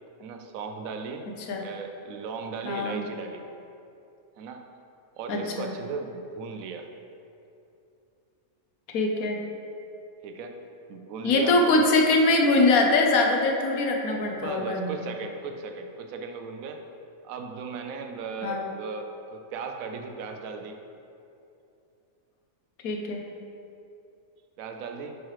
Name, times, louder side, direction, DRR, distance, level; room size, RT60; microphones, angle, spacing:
voice 1, 0.2-1.3 1.6-3.4 4.4-4.7 5.2-6.9 10.2-11.8 14.3-16.8 17.2-20.8 24.6-25.2, right 4 dB, 80° right, 5 dB, 1.0 m, -37 dB
voice 2, 2.6-3.0 5.3-5.7 8.9-9.4 11.2-14.9 18.4-18.6 22.8-23.2, left 2 dB, 90° left, 1 dB, 1.2 m, -23 dB
8.1 x 3.1 x 4.7 m, 2.7 s
omnidirectional pair, 1.5 m